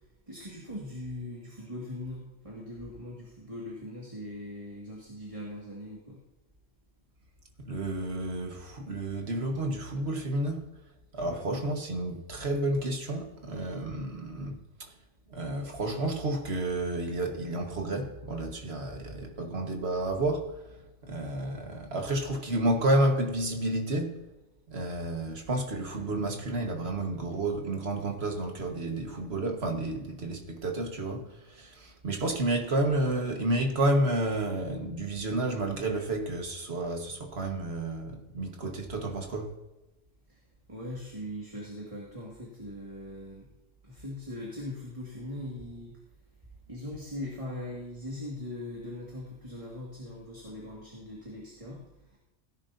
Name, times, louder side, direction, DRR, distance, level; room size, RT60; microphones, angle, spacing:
voice 1, 0.3-6.2 11.2-11.4 40.3-40.4 40.7-43.5 43.8-45.9 46.7-51.8 52.1-52.2, left 1 dB, 25° right, 2.3 m, -40 dB
voice 2, 7.7-10.7 11.1-14.6 15.3-20.6 21.0-24.2 24.7-31.2 31.5-39.5, right 1 dB, 60° right, 1.8 m, -30 dB
17.0 x 10.5 x 2.8 m
omnidirectional pair, 1.3 m